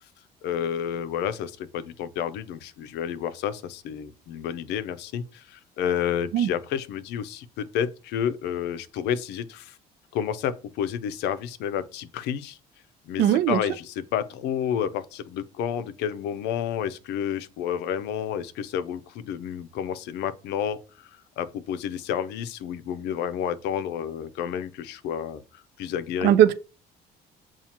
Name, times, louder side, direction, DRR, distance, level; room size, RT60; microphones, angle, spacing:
voice 1, 0.4-9.8 10.1-12.6 13.1-26.4, left 9 dB, 85° left, 0.5 m, -30 dB
voice 2, 13.2-13.6 26.2-26.5, right 10 dB, 80° right, 0.5 m, -18 dB
7.1 x 2.4 x 2.8 m
cardioid pair, 110°, 17 cm